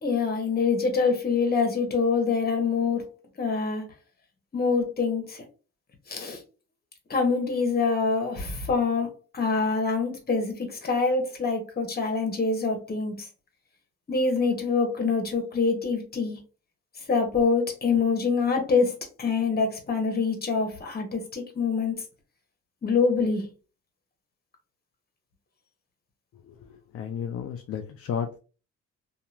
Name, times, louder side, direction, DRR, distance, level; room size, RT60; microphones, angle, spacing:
voice 1, 0.0-3.0 3.4-3.8 4.5-5.4 6.1-6.4 7.1-9.1 9.3-13.3 14.1-16.4 17.1-22.0 22.8-23.4, left 4 dB, 30° left, 4 dB, 1.1 m, -25 dB
voice 2, 26.5-28.4, left 7 dB, 50° left, 5 dB, 0.4 m, -33 dB
2.8 x 2.4 x 2.5 m, 0.34 s
cardioid pair, 90°, 30 cm